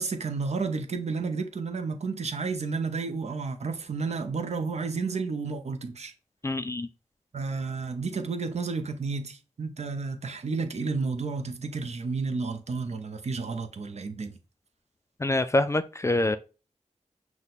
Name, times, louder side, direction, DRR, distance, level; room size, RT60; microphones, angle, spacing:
voice 1, 0.0-6.1 7.3-14.4, right 4 dB, 60° right, 0.6 m, -31 dB
voice 2, 6.4-6.9 15.2-16.4, left 2 dB, 20° left, 0.3 m, -25 dB
6.0 x 2.2 x 3.9 m
wide cardioid pair, 75°, 13 cm